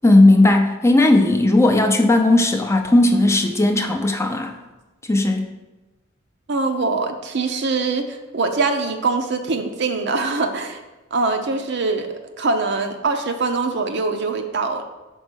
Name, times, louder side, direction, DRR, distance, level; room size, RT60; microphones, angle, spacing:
voice 1, 0.0-4.5 5.1-5.5, left 2 dB, 15° left, 4 dB, 0.5 m, -16 dB
voice 2, 6.5-10.8 11.1-12.1 12.4-14.8, right 3 dB, 60° right, 5 dB, 0.7 m, -23 dB
5.4 x 4.5 x 6.2 m, 1.1 s
head